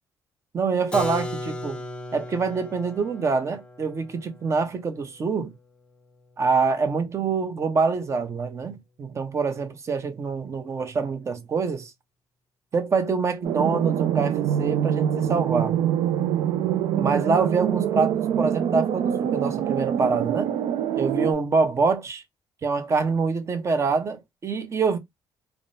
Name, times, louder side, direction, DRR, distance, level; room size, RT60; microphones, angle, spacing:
voice 1, 0.5-1.8 2.1-5.5 6.4-11.9 12.7-15.8 17.0-20.5 21.0-22.2 22.6-25.0, right 4 dB, 35° right, 0.6 m, -25 dB
Keyboard (musical), 0.9-6.5, left 1 dB, 10° left, 0.5 m, -37 dB
sound 1, 13.4-21.3, right 10 dB, 75° right, 0.4 m, -25 dB
3.5 x 2.0 x 2.5 m
cardioid pair, 115°, 8 cm